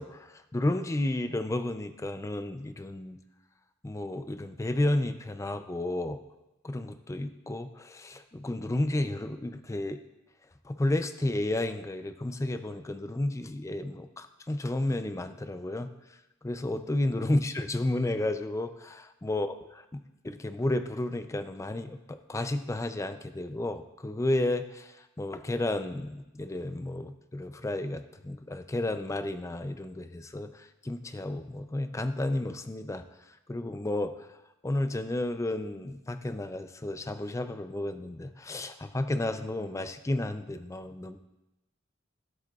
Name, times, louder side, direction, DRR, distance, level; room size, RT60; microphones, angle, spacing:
voice 1, 0.0-3.2 3.8-6.2 6.6-10.0 10.6-15.9 16.4-33.0 33.5-34.3 34.6-41.2, left 1 dB, 15° left, 9 dB, 0.4 m, -32 dB
15.5 x 7.8 x 2.4 m, 0.96 s
head